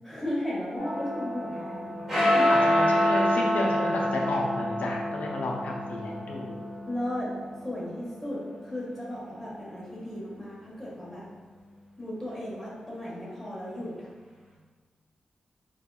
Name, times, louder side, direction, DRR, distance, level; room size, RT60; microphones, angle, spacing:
voice 1, 0.0-2.0 2.3-2.5 6.9-7.3 7.6-11.3 12.0-14.1, left 1 dB, 10° left, -6 dB, 1.0 m, -35 dB
sound 1, 0.8-9.3, left 1 dB, 10° right, 1.2 m, -27 dB
voice 2, 2.5-6.7, left 2 dB, 80° left, -1 dB, 0.4 m, -32 dB
2.7 x 2.2 x 2.3 m, 1.4 s
cardioid pair, 45°, 3 cm